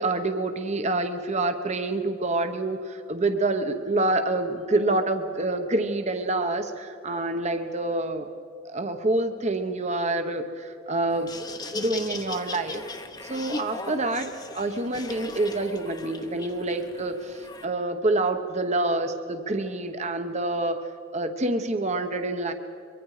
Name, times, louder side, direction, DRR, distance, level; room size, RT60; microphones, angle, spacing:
voice 1, 0.0-8.3 8.6-11.3 11.7-12.8 13.2-22.5, right 2 dB, 35° right, 7 dB, 1.1 m, -27 dB
Laughter, 11.1-17.6, left 2 dB, 20° left, 1.0 m, -38 dB
24.5 x 23.0 x 5.0 m, 2.6 s
head